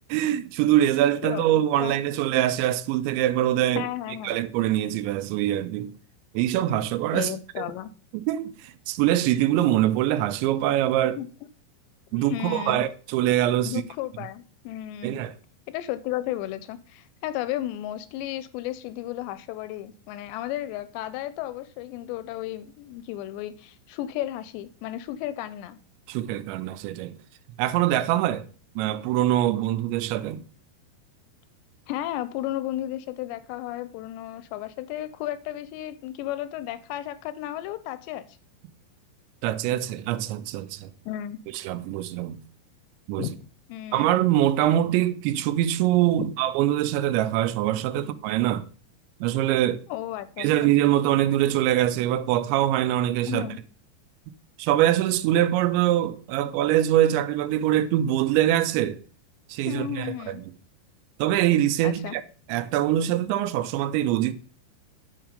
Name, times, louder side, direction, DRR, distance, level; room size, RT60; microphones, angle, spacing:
voice 1, 0.1-3.9 4.2-5.9 6.3-7.3 7.6-7.7 8.1-11.2 12.1-13.8 15.0-15.3 26.1-27.2 27.6-28.5 28.8-30.4 39.4-40.9 41.5-42.4 43.1-43.3 43.9-48.7 49.2-49.8 50.4-53.5 54.6-59.0 59.5-60.5 61.2-62.2 62.5-64.3, right 12 dB, 85° right, 2.9 m, -23 dB
voice 2, 1.2-1.9 3.8-4.4 7.1-7.9 11.2-11.3 12.1-12.8 13.7-15.2 15.7-25.8 31.9-38.3 41.1-41.4 43.2-43.3 43.7-44.1 49.9-50.7 53.3-53.6 59.7-60.4 61.8-62.2, left 13 dB, 85° left, 2.7 m, -33 dB
10.0 x 6.0 x 5.0 m
omnidirectional pair, 5.2 m